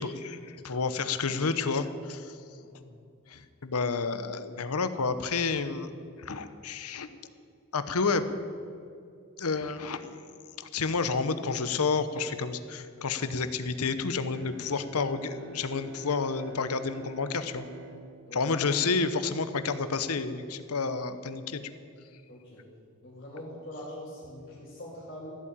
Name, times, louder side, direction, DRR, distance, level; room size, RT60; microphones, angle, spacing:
voice 1, 0.0-2.3 3.3-5.9 6.2-7.1 7.7-8.2 9.4-10.3 10.6-17.7 18.3-21.6, left 4 dB, 80° left, 11 dB, 0.9 m, -30 dB
voice 2, 2.6-2.9 18.3-18.4 22.3-22.6 23.0-25.4, left 1 dB, 40° left, -7 dB, 2.6 m, -43 dB
Bowed string instrument, 14.3-19.9, right 5 dB, 55° right, 1.2 m, -50 dB
14.0 x 8.5 x 8.8 m, 2.4 s
head